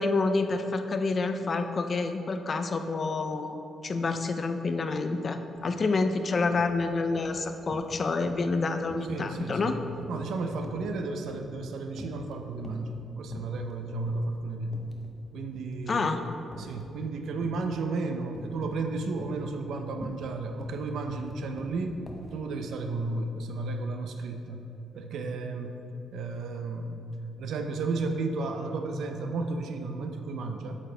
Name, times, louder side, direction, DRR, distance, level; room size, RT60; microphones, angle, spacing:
voice 1, 0.0-3.6 3.8-9.8 15.9-16.2, left 3 dB, 45° left, 8 dB, 0.5 m, -28 dB
sound 1, 5.6-5.7 6.0-6.8 7.1-8.0 8.2-8.6 8.9-11.7 12.0-12.9 13.3-13.7 14.1-14.2 14.7-15.2 15.5-16.9 17.4-17.8 18.3-18.8 19.1-22.4, left 1 dB, 15° left, 1.0 m, -46 dB
voice 2, 9.1-9.8 10.1-14.7 15.3-16.1 16.6-21.9 22.3-24.7 24.9-25.8 26.1-27.1 27.4-30.8, right 3 dB, 75° right, 5 dB, 0.6 m, -33 dB
8.5 x 6.6 x 3.4 m, 2.9 s
cardioid pair, 70°, 0 cm